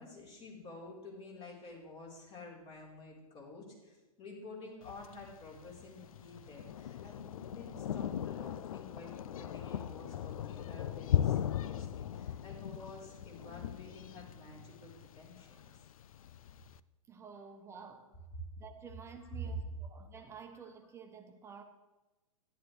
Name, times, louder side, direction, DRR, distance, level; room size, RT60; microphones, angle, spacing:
voice 1, 0.0-15.6 17.4-17.5 19.2-19.4, left 2 dB, 35° left, -2 dB, 4.0 m, -50 dB
Thunder, 4.8-16.8, left 10 dB, 70° left, 0.4 m, -38 dB
voice 2, 17.1-18.1 18.6-21.6, right 6 dB, 15° right, 5 dB, 1.2 m, -51 dB
13.0 x 11.0 x 3.2 m, 1.1 s
hypercardioid pair, 120°, 18 cm